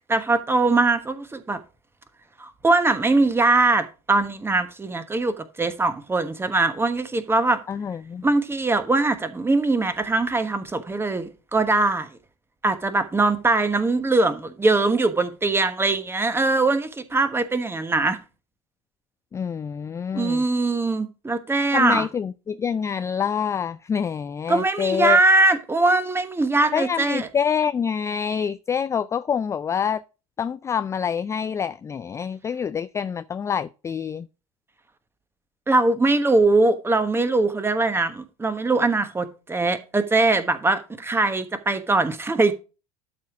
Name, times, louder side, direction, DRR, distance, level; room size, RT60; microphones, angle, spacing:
voice 1, 0.1-1.6 2.4-7.6 8.2-12.1 12.6-18.2 20.1-22.1 24.5-27.3 35.7-42.5, right 3 dB, 10° right, 1.2 m, -21 dB
voice 2, 7.7-8.3 19.3-20.4 21.7-25.2 26.7-30.0 30.4-34.3, left 7 dB, 15° left, 0.3 m, -26 dB
12.0 x 4.4 x 4.8 m
hypercardioid pair, 80°, 19 cm